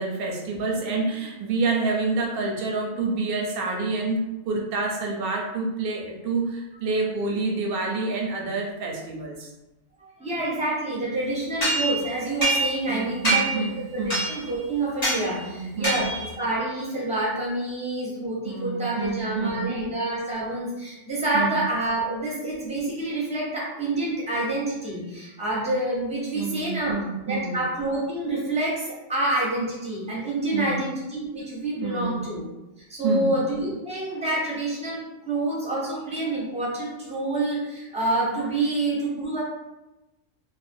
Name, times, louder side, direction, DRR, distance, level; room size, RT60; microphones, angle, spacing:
voice 1, 0.0-9.5 12.9-14.3 15.5-16.1 18.4-19.7 21.3-21.6 26.3-27.6 30.5-30.8 31.8-32.2 33.0-33.3, right 3 dB, 60° right, -1 dB, 0.6 m, -28 dB
voice 2, 10.0-26.9 27.3-32.4 32.9-39.4, right 2 dB, 10° right, -6 dB, 0.4 m, -28 dB
sound 1, 11.6-12.9 13.2-13.7 14.1-14.5 15.0-15.2 15.8-16.3, right 2 dB, 35° left, 0.9 m, -25 dB
2.4 x 2.1 x 2.5 m, 1.0 s
omnidirectional pair, 1.4 m